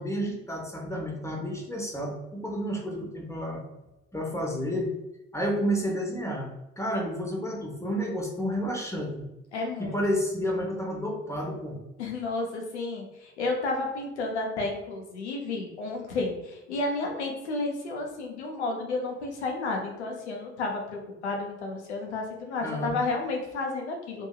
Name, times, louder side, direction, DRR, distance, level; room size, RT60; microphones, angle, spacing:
voice 1, 0.0-3.6 4.1-4.9 5.3-6.5 6.8-9.3 9.8-11.8 22.6-23.0, equal, 10° left, 0 dB, 0.8 m, -30 dB
voice 2, 9.5-10.0 12.0-24.3, left 3 dB, 85° left, 1 dB, 0.6 m, -31 dB
2.8 x 2.6 x 2.3 m, 0.95 s
figure-of-eight pair, 50°, 33 cm